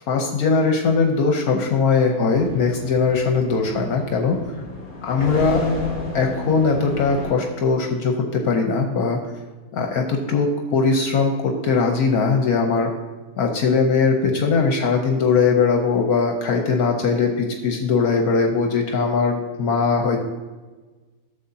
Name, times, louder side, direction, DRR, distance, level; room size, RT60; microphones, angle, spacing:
voice 1, 0.1-4.4 5.0-5.7 6.1-9.2 9.7-12.9 13.4-20.2, left 4 dB, 75° left, 2 dB, 1.3 m, -20 dB
sound 1, 2.3-7.3, left 3 dB, 35° left, 1.6 m, -31 dB
12.5 x 7.1 x 2.8 m, 1.3 s
omnidirectional pair, 1.7 m